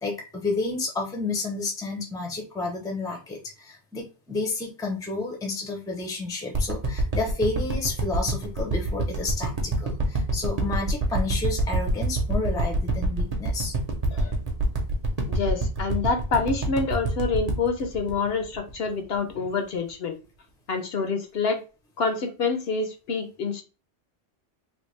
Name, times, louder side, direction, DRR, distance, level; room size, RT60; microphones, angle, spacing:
voice 1, 0.0-13.7, left 3 dB, 5° left, 0.5 m, -31 dB
sound 1, 6.5-18.9 19.3-19.4, right 1 dB, 40° right, 0.7 m, -26 dB
voice 2, 15.3-20.2 20.7-21.6 22.0-23.6, left 4 dB, 65° left, 0.8 m, -27 dB
3.4 x 2.2 x 3.1 m
omnidirectional pair, 1.2 m